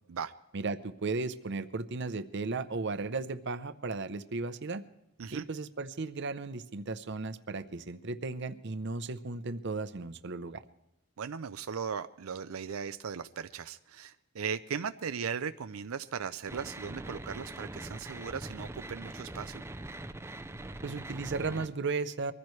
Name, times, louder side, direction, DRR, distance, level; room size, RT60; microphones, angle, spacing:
voice 1, 0.5-4.8 5.3-10.6 20.8-22.3, right 3 dB, 55° right, 11 dB, 0.7 m, -35 dB
voice 2, 11.2-19.6, right 6 dB, 90° right, 10 dB, 0.5 m, -38 dB
sound 1, 16.5-21.7, right 1 dB, 10° right, 0.5 m, -42 dB
23.0 x 15.0 x 3.2 m, 0.91 s
head